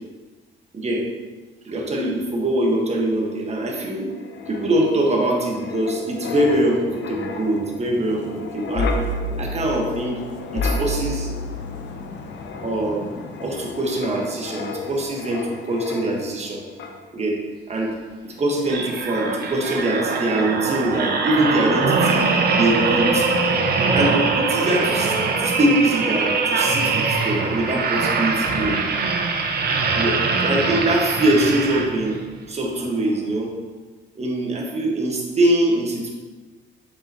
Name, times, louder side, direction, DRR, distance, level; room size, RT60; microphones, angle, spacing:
voice 1, 1.6-4.1 4.5-8.9 9.4-10.2 10.5-11.3 12.6-13.1 13.4-16.7 17.1-17.4 17.7-17.9 18.2-23.3 23.9-28.8 30.0-32.2 32.5-33.5 34.1-36.1, right 1 dB, 35° right, -1 dB, 1.3 m, -23 dB
Wind, 4.1-16.5 16.8-17.0, left 2 dB, 65° left, 0.8 m, -31 dB
sound 1, 18.6-32.2 32.8-33.0, right 4 dB, 55° right, 0.8 m, -22 dB
7.1 x 5.3 x 2.9 m, 1.3 s
cardioid pair, 90°, 20 cm